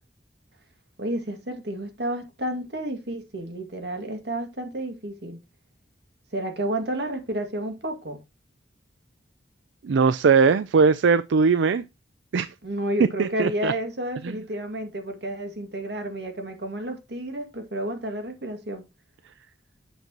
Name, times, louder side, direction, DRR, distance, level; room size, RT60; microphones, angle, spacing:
voice 1, 1.0-5.4 6.3-8.2 12.6-18.8, right 1 dB, 65° right, 2.1 m, -31 dB
voice 2, 9.8-11.8 12.3-12.5 13.2-13.7 14.2-14.3, right 5 dB, 85° right, 0.4 m, -20 dB
8.1 x 6.0 x 2.9 m
head